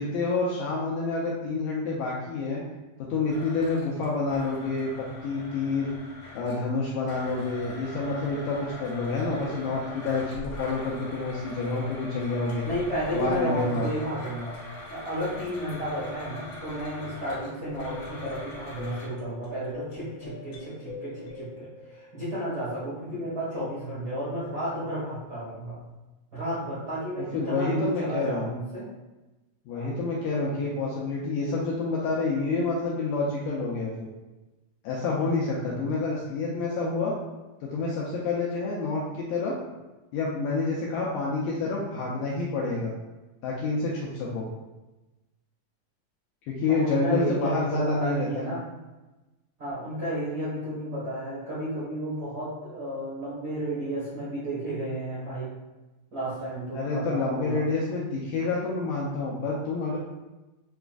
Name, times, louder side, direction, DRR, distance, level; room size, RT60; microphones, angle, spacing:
voice 1, 0.0-2.6 3.0-4.9 5.2-5.9 6.4-12.7 13.1-13.9 27.3-28.5 29.7-34.1 34.8-37.1 37.6-39.6 40.1-42.9 43.4-44.5 46.5-48.4 56.7-60.0, left 3 dB, 85° left, -4 dB, 1.9 m, -28 dB
Domestic sounds home sounds, 3.3-6.7 7.1-19.1, left 1 dB, 50° left, 1.5 m, -42 dB
voice 2, 12.6-14.6 14.9-25.8 26.3-28.9 29.7-29.9 35.7-36.0 46.7-48.6 49.6-55.5 56.1-57.6, right 1 dB, 85° right, -12 dB, 0.8 m, -32 dB
sound 1, 17.6-22.7, left 5 dB, 65° left, 1.9 m, -44 dB
6.9 x 2.3 x 2.4 m, 1.1 s
omnidirectional pair, 4.3 m